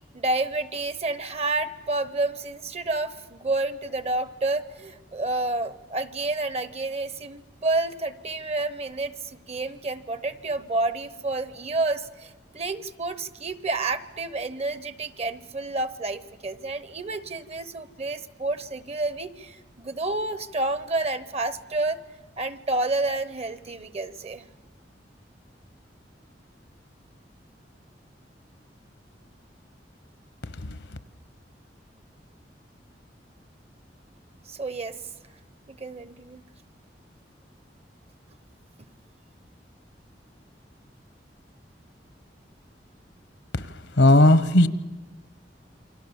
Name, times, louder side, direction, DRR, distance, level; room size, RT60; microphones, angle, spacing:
voice 1, 0.1-22.0 22.4-24.4 34.5-35.0 35.7-36.4, right 2 dB, 35° right, 1.0 m, -29 dB
voice 2, 44.0-44.7, left 1 dB, 80° left, 1.1 m, -16 dB
28.0 x 24.0 x 7.3 m
head